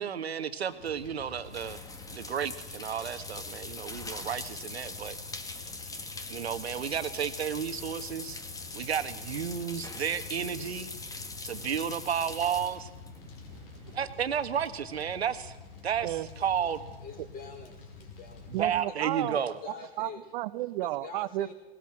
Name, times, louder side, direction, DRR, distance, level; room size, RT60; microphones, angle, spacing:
voice 1, 0.0-1.8 2.1-5.2 6.3-8.4 8.7-10.9 11.4-12.9 13.9-15.6 15.8-16.8 18.5-19.5, right 8 dB, 85° right, 10 dB, 1.7 m, -32 dB
sound 1, 0.7-13.9, left 3 dB, 10° left, 1.7 m, -42 dB
Fire, 0.8-18.8, left 4 dB, 65° left, 5.1 m, -48 dB
voice 2, 13.5-14.0 16.0-16.3 18.5-19.4 19.7-21.5, right 17 dB, 50° right, 16 dB, 1.1 m, -33 dB
voice 3, 17.0-18.5 18.9-19.0 19.3-20.2 20.8-21.5, left 5 dB, 30° left, 4 dB, 5.0 m, -45 dB
19.5 x 18.0 x 7.7 m, 1.1 s
hypercardioid pair, 115°, 31 cm